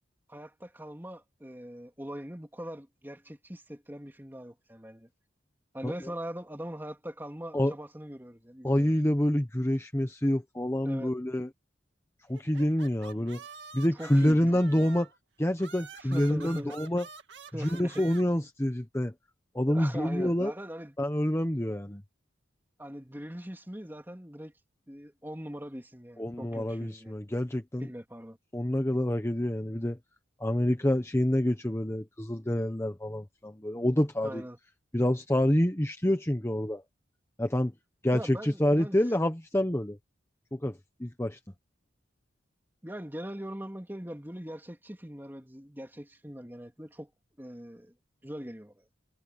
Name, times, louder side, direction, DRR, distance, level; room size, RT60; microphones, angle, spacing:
voice 1, 0.3-5.1 5.7-8.9 10.8-11.1 13.9-14.9 16.0-16.8 17.5-18.0 19.7-21.0 22.8-24.5 24.9-27.1 27.8-28.4 34.2-34.6 38.1-39.0 42.8-47.1 47.4-47.9 48.2-48.8, equal, 10° right, 3.0 m, -41 dB
voice 2, 8.6-11.5 12.3-13.4 13.7-15.1 15.4-17.0 17.6-19.1 19.5-20.5 21.0-22.0 26.2-27.9 28.5-30.0 30.4-34.4 34.9-36.8 37.4-37.7 38.0-40.0 40.5-41.4, left 1 dB, 15° left, 1.0 m, -27 dB
sound 1, 12.3-15.2 15.6-18.2, right 5 dB, 60° right, 2.2 m, -48 dB
head